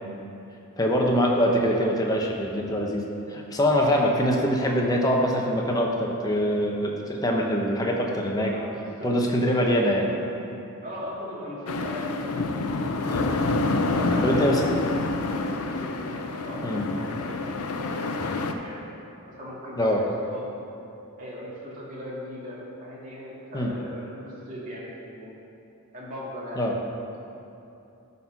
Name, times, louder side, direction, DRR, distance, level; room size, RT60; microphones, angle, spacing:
voice 1, 0.8-3.0 3.3-8.5 9.0-10.1 13.1-13.3 14.2-14.7 16.6-16.9 19.8-20.0 23.5-23.7 26.6-26.7, equal, 15° left, -1 dB, 0.9 m, -23 dB
voice 2, 8.4-10.2 10.8-12.5 13.6-17.5 17.8-18.8 19.4-20.5 21.2-25.3 25.9-26.6, left 1 dB, 35° right, -7 dB, 2.2 m, -38 dB
sound 1, 11.7-18.5, left 3 dB, 80° left, 0.6 m, -27 dB
12.0 x 4.2 x 5.8 m, 2.8 s
head